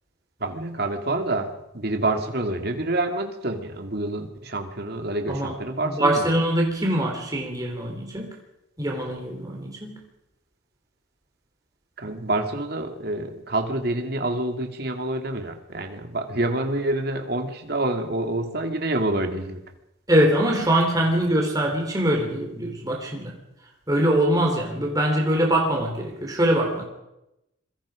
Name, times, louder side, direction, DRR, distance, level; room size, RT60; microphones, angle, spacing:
voice 1, 0.4-6.3 12.0-19.6, right 2 dB, 50° right, 4 dB, 2.5 m, -27 dB
voice 2, 5.8-8.3 8.8-10.0 20.1-23.3 23.9-26.8, right 1 dB, 20° right, 0 dB, 3.8 m, -23 dB
26.5 x 22.5 x 5.1 m, 0.90 s
head